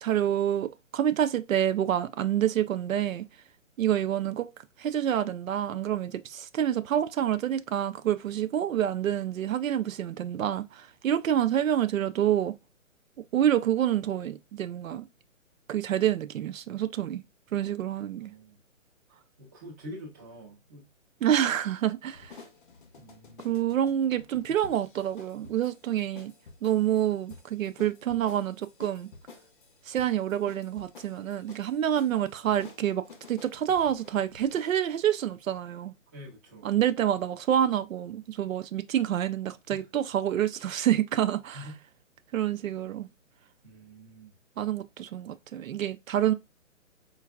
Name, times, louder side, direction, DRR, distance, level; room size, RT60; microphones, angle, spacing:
voice 1, 0.0-3.3 3.8-4.5 4.8-12.5 13.3-15.1 15.7-17.2 17.5-18.3 21.2-22.3 23.4-26.3 26.6-29.1 29.9-35.9 36.6-41.7 42.3-43.1 44.6-46.3, right 10 dB, 80° right, 0.5 m, -27 dB
voice 2, 18.2-18.6 19.4-20.9 23.0-23.5 36.1-36.7 39.7-39.8 41.5-41.8 43.6-44.3, equal, 15° right, 0.7 m, -46 dB
sound 1, 22.1-34.8, left 4 dB, 40° left, 0.7 m, -52 dB
4.6 x 2.3 x 2.3 m
hypercardioid pair, 155°, 40 cm